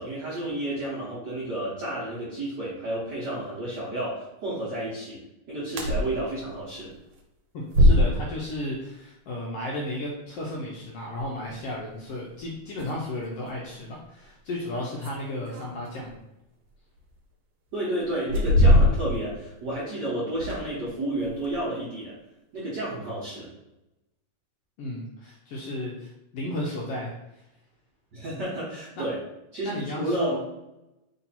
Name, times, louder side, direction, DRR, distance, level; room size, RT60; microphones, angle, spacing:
voice 1, 0.0-5.2 5.5-6.9 17.7-22.1 22.5-23.5 28.1-29.2 29.5-29.7 30.0-30.4, right 1 dB, 50° right, -8 dB, 1.3 m, -31 dB
sound 1, 5.8-6.1 6.5-6.6 7.7-8.4 11.2-11.3 12.4-12.5 12.7-12.9 13.5-13.6 14.7-16.1 17.1-17.2 18.1-19.3 19.6-19.7 20.3-20.9 21.2-21.6, left 1 dB, 75° right, 1.9 m, -21 dB
voice 2, 7.5-16.1 24.8-27.4 29.0-29.1 29.6-30.4, left 1 dB, 75° left, -3 dB, 1.5 m, -34 dB
4.5 x 2.8 x 4.1 m, 0.90 s
omnidirectional pair, 3.4 m